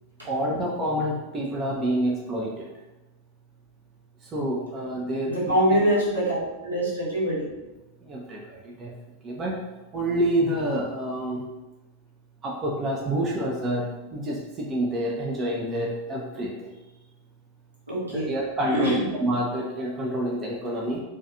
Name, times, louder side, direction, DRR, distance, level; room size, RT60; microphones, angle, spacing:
voice 1, 0.2-2.6 4.3-5.4 8.1-8.4 8.6-8.9 9.2-9.5 9.9-11.4 12.4-16.5 18.1-21.0, right 1 dB, 25° right, -2 dB, 0.4 m, -27 dB
voice 2, 5.2-7.5 17.9-18.3 18.6-19.0, equal, 80° right, -8 dB, 1.0 m, -24 dB
2.3 x 2.3 x 2.7 m, 1.1 s
figure-of-eight pair, 90°, 0 cm